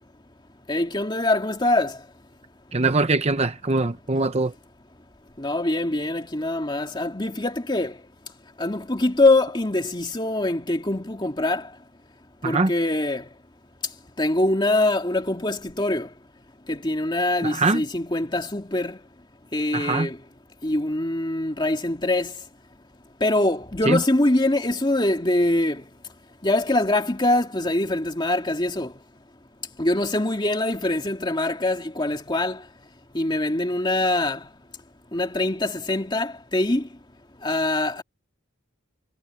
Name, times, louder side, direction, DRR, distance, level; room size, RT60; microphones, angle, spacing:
voice 1, 0.7-2.0 5.4-8.0 8.6-11.7 12.4-13.3 14.2-16.1 16.7-19.0 19.5-20.2 20.6-22.3 23.2-25.8 26.4-28.9 29.8-32.6 33.1-34.5 35.1-36.9 37.4-38.0, left 2 dB, 20° left, 2.3 m, -23 dB
voice 2, 2.7-4.5 12.4-12.7 17.4-17.8 19.7-20.1 23.9-24.0, right 3 dB, 30° right, 0.8 m, -22 dB
head